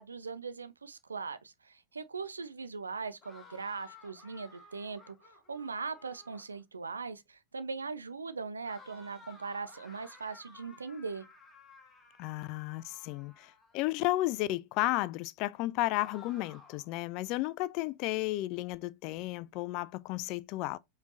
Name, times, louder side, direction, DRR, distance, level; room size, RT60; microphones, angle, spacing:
voice 1, 0.0-5.2 5.5-11.3, right 4 dB, 75° right, 0.4 m, -40 dB
sound 1, 3.2-6.6 8.6-13.9 15.9-16.9, left 3 dB, 15° left, 1.3 m, -56 dB
voice 2, 12.2-20.8, left 17 dB, 40° left, 0.3 m, -33 dB
4.9 x 3.2 x 2.5 m
figure-of-eight pair, 90°, 0 cm